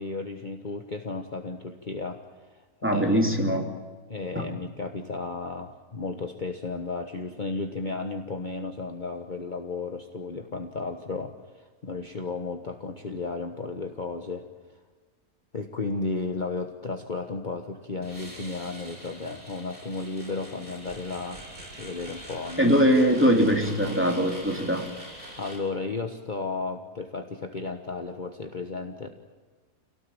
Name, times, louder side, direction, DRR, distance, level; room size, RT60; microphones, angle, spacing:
voice 1, 0.0-2.2 2.8-3.2 4.1-14.5 15.5-21.4 21.8-22.8 25.4-29.1, left 3 dB, 35° left, 5 dB, 1.4 m, -34 dB
voice 2, 2.8-3.7 22.6-24.8, equal, 10° right, 1 dB, 3.1 m, -21 dB
sound 1, 18.0-25.6, right 1 dB, 40° right, 7.9 m, -44 dB
27.0 x 18.0 x 8.8 m, 1.4 s
omnidirectional pair, 1.5 m